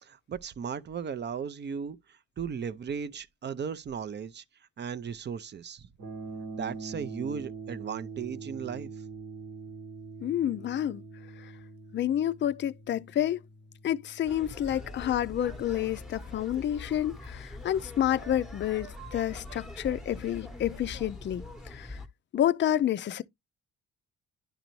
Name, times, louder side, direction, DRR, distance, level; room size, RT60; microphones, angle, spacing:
voice 1, 0.0-4.4 4.8-5.9 6.5-8.9, right 6 dB, 35° right, 0.5 m, -36 dB
sound 1, 6.0-16.1, right 4 dB, 65° right, 1.4 m, -44 dB
voice 2, 10.2-11.0 11.4-11.5 11.9-13.4 13.8-22.0 22.3-23.2, left 11 dB, 40° left, 0.4 m, -29 dB
sound 2, 14.3-22.1, left 2 dB, ahead, 0.9 m, -43 dB
10.5 x 3.9 x 3.0 m
cardioid pair, 90°, 30 cm